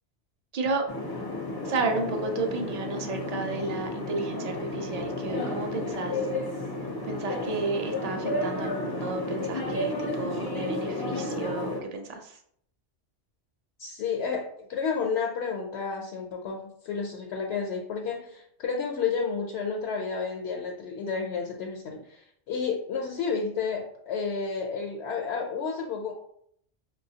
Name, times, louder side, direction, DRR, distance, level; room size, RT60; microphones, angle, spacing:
sound 1, 0.9-11.8, left 2 dB, 35° left, 0.4 m, -32 dB
voice 1, 1.6-6.2 7.1-12.4, right 3 dB, 55° right, 4 dB, 0.4 m, -32 dB
voice 2, 13.8-26.1, left 5 dB, 85° left, 0 dB, 0.9 m, -31 dB
4.7 x 2.2 x 2.7 m, 0.68 s
omnidirectional pair, 1.1 m